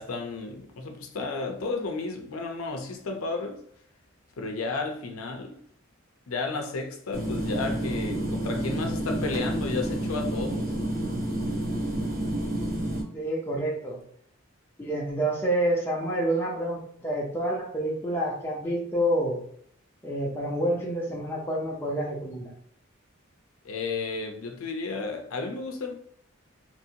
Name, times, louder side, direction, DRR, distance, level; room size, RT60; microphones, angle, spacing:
voice 1, 0.0-3.6 4.4-5.6 6.3-10.7 23.6-25.9, left 3 dB, 85° left, 0.5 m, -32 dB
sound 1, 7.1-13.0, right 1 dB, 45° right, 1.0 m, -29 dB
voice 2, 13.1-14.0 14.8-19.4 20.0-22.5, right 1 dB, 10° left, 0.6 m, -28 dB
2.9 x 2.6 x 2.7 m
head